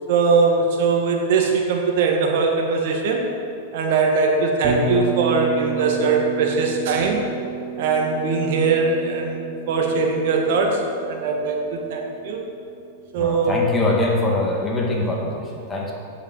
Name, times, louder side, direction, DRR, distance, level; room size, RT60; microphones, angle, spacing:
voice 1, 0.1-3.2 3.7-7.2 7.8-10.8 11.1-12.4 13.1-13.6, right 4 dB, 60° right, 1 dB, 1.8 m, -21 dB
Bass guitar, 4.6-12.7, right 5 dB, 35° right, 1.7 m, -31 dB
voice 2, 13.2-15.9, left 2 dB, 15° left, -2 dB, 2.0 m, -23 dB
8.1 x 7.0 x 8.3 m, 2.5 s
supercardioid pair, 145°, 0 cm